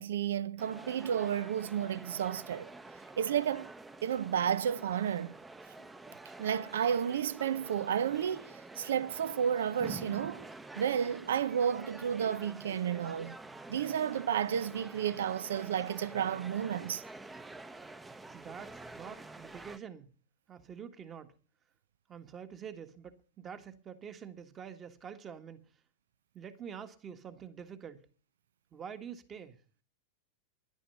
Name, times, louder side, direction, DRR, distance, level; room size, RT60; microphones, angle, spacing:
voice 1, 0.0-2.7 3.2-3.7 4.0-5.3 6.4-10.5 10.8-13.4 13.7-17.0, right 8 dB, 90° right, 0.6 m, -32 dB
sound 1, 0.6-19.8, right 2 dB, 10° right, 0.7 m, -48 dB
voice 2, 18.3-20.1 20.5-21.3 22.1-25.6 26.3-28.1 28.7-29.6, right 7 dB, 25° right, 1.6 m, -46 dB
11.0 x 10.0 x 7.0 m
supercardioid pair, 130°, 0 cm